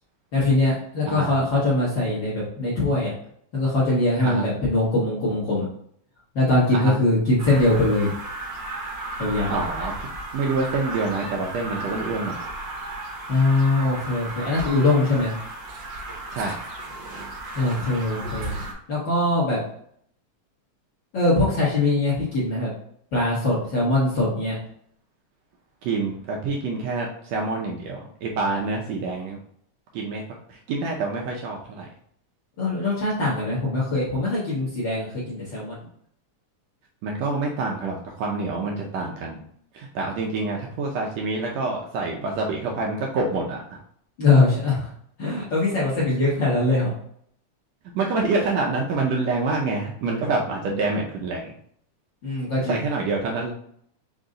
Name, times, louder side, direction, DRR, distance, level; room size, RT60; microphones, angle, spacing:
voice 1, 0.3-3.1 3.5-5.7 6.3-8.1 9.2-9.5 13.3-15.3 17.5-18.5 18.9-19.6 21.1-22.7 23.1-24.5 32.6-35.8 44.2-44.9 45.2-46.9 52.2-52.8, left 2 dB, 50° left, -7 dB, 1.5 m, -22 dB
sound 1, 7.4-18.7, right 2 dB, 60° right, 1.2 m, -34 dB
voice 2, 9.5-9.9 10.3-12.4 16.3-16.6 25.8-29.4 29.9-31.9 37.0-39.4 39.7-43.8 47.9-51.5 52.7-53.5, right 3 dB, 75° right, -1 dB, 1.6 m, -27 dB
5.2 x 2.7 x 3.7 m, 0.67 s
omnidirectional pair, 3.5 m